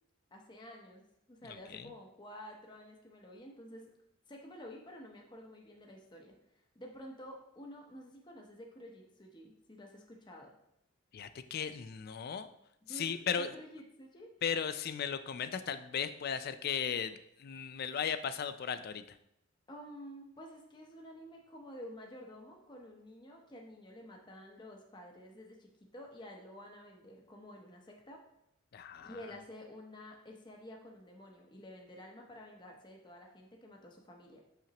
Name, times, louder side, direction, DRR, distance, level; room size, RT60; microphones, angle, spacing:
voice 1, 0.3-3.9 4.3-6.3 6.7-10.5 12.9-14.3 19.7-28.2 29.0-34.4, equal, 20° left, 0 dB, 0.7 m, -50 dB
voice 2, 11.1-12.5 12.9-13.5 14.4-19.0 28.7-29.2, left 7 dB, 45° left, 11 dB, 0.4 m, -36 dB
7.1 x 5.7 x 2.9 m, 0.78 s
head